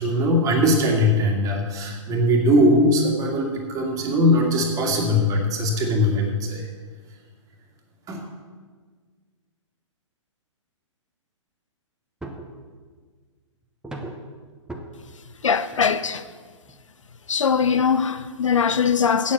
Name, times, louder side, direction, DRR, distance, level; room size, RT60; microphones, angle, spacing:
voice 1, 0.0-6.7 8.1-8.2, left 1 dB, 20° right, 2.0 m, -20 dB
sound 1, 12.2-12.6 13.8-14.3 14.7-14.8 15.7-15.8 16.2-16.4 16.7-16.8 17.3-17.4, right 2 dB, 5° right, 1.0 m, -36 dB
voice 2, 15.4-16.2 17.3-19.3, left 6 dB, 75° left, 0.6 m, -21 dB
8.7 x 7.4 x 7.6 m
figure-of-eight pair, 120°, 16 cm